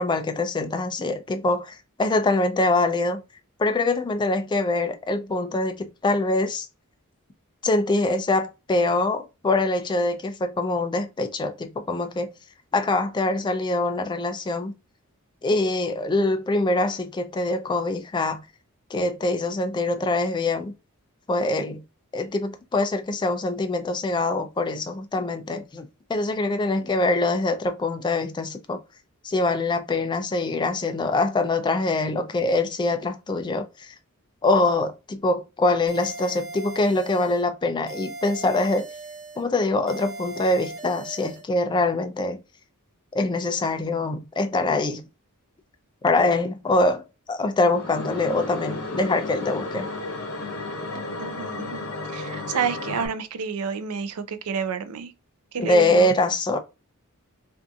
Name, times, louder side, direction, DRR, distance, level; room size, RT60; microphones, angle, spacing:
voice 1, 0.0-3.2 3.6-6.7 7.6-12.3 12.7-14.7 15.4-18.4 18.9-20.7 21.3-21.8 22.1-28.8 29.2-33.9 34.4-38.9 39.4-42.4 43.1-45.0 46.0-47.0 47.3-49.9 55.6-56.6, left 2 dB, 20° left, 0.3 m, -24 dB
sound 1, 35.9-37.5 37.9-39.5 39.9-41.5, right 2 dB, 55° right, 0.8 m, -39 dB
sound 2, 47.7-53.1, left 3 dB, 70° left, 0.7 m, -33 dB
voice 2, 51.2-55.1 55.5-56.1, right 6 dB, 80° right, 0.4 m, -30 dB
2.6 x 2.5 x 2.3 m
head